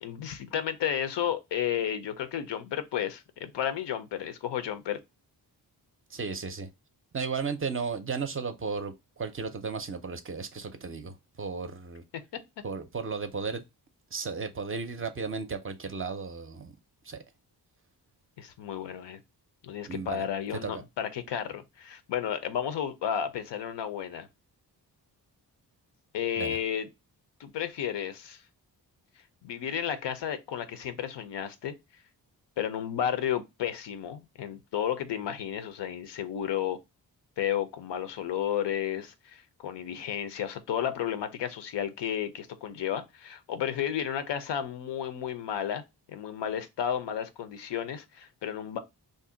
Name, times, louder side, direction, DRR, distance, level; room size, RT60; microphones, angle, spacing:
voice 1, 0.0-5.0 12.1-12.2 18.4-19.2 19.6-24.3 26.1-26.9 27.4-28.4 29.4-31.7 32.6-36.8 37.4-45.8 46.1-48.8, left 9 dB, 85° left, 0.6 m, -32 dB
voice 2, 6.1-6.7 7.1-12.0 12.6-13.6 14.1-16.7 17.0-17.2 19.9-20.3 20.6-20.7 26.4-26.6, right 5 dB, 30° right, 0.4 m, -34 dB
2.6 x 2.1 x 3.7 m
cardioid pair, 85°, 41 cm